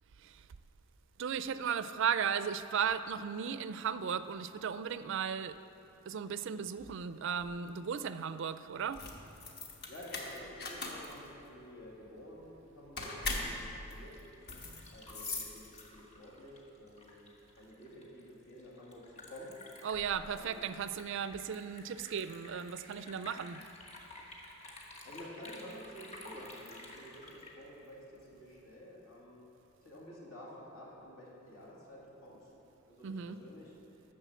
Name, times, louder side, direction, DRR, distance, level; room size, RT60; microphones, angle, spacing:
voice 1, 1.2-5.6 6.1-9.0 19.8-23.6 33.0-33.4, right 7 dB, 55° right, 13 dB, 0.3 m, -36 dB
sound 1, 8.8-16.2, left 2 dB, 45° left, 1.2 m, -41 dB
voice 2, 9.9-14.2 14.9-19.5 20.3-20.6 25.0-29.5 29.8-32.5 32.9-33.7, equal, 75° left, -5 dB, 2.5 m, -51 dB
Liquid, 13.9-28.4, left 2 dB, 30° left, 1.2 m, -53 dB
10.0 x 6.6 x 6.9 m, 3.0 s
head